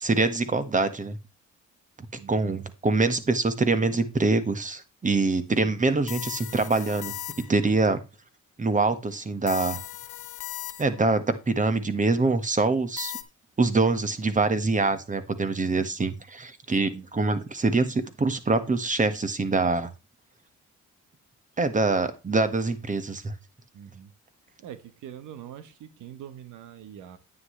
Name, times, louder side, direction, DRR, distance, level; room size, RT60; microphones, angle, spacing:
voice 1, 0.0-1.2 2.3-7.1 7.5-8.0 8.6-9.8 10.8-13.1 13.6-19.9 21.6-23.3, right 3 dB, 25° right, 1.6 m, -24 dB
voice 2, 2.2-2.6 16.8-17.0 23.7-24.1 24.6-27.2, right 9 dB, 90° right, 1.3 m, -43 dB
sound 1, 6.1-7.7 9.5-11.1 13.0-13.2, left 12 dB, 85° left, 1.2 m, -37 dB
9.8 x 9.6 x 3.3 m
cardioid pair, 90°, 30 cm